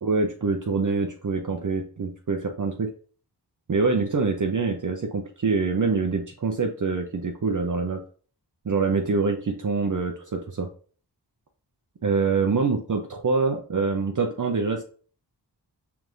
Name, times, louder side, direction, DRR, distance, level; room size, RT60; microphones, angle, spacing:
voice 1, 0.0-2.9 3.7-8.0 8.6-10.7 12.0-14.8, right 4 dB, 45° right, 3 dB, 0.7 m, -25 dB
4.6 x 3.5 x 2.6 m, 0.41 s
wide cardioid pair, 55°, 42 cm